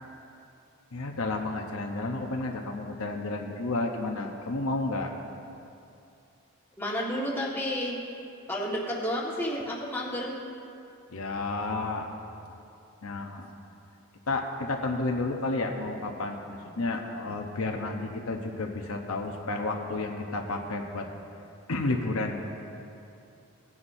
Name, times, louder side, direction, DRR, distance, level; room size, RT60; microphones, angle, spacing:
voice 1, 0.9-5.1 11.1-12.1 13.0-13.5 14.3-21.1 21.7-22.4, left 2 dB, 70° left, 2 dB, 0.8 m, -31 dB
voice 2, 6.8-8.0 8.5-10.3, equal, 10° left, -5 dB, 1.5 m, -31 dB
18.5 x 9.7 x 2.6 m, 2.6 s
head